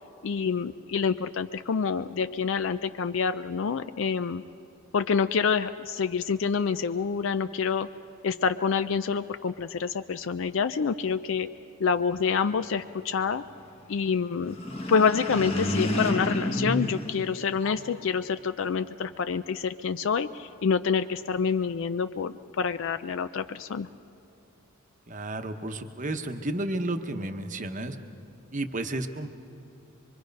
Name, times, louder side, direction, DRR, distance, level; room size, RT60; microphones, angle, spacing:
voice 1, 0.2-4.4 4.9-7.9 8.2-13.4 13.9-14.5 14.9-23.9, left 6 dB, 60° left, 11 dB, 0.4 m, -27 dB
sound 1, 14.4-18.0, left 1 dB, 25° left, 1.2 m, -30 dB
voice 2, 25.1-28.0 28.5-29.3, right 1 dB, 35° right, 7 dB, 0.9 m, -32 dB
24.5 x 23.0 x 5.3 m, 2.7 s
head